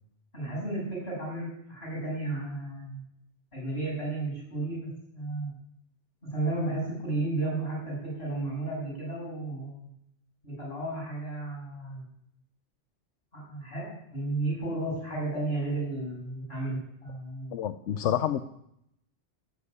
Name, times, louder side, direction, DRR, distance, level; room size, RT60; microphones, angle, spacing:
voice 1, 0.3-3.0 3.5-5.5 6.2-9.9 10.4-12.0 13.3-17.5, right 2 dB, 60° left, -3 dB, 7.3 m, -33 dB
voice 2, 17.5-18.4, left 10 dB, 85° left, 11 dB, 1.0 m, -28 dB
13.0 x 6.6 x 9.7 m, 0.75 s
omnidirectional pair, 1.2 m